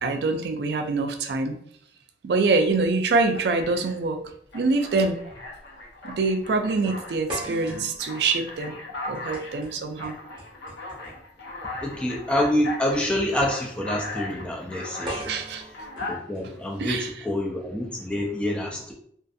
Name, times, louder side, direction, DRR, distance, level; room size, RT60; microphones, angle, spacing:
voice 1, 0.0-1.6 2.2-4.2 4.5-5.3 6.0-8.8 9.0-10.2 15.2-15.6 16.8-17.1, right 3 dB, 70° right, 5 dB, 0.4 m, -25 dB
Alarm, 2.7-2.9 3.3-4.0 4.5-7.2 7.6-15.2 15.7-16.2, left 2 dB, 85° left, 0.6 m, -38 dB
sound 1, 5.3-5.5 5.8-5.9 7.3-11.3 12.5-12.7 15.1-17.1, equal, 25° right, 0.8 m, -40 dB
voice 2, 11.7-15.3 16.1-18.9, left 1 dB, 5° left, 0 dB, 0.4 m, -27 dB
2.5 x 2.4 x 2.3 m, 0.65 s
head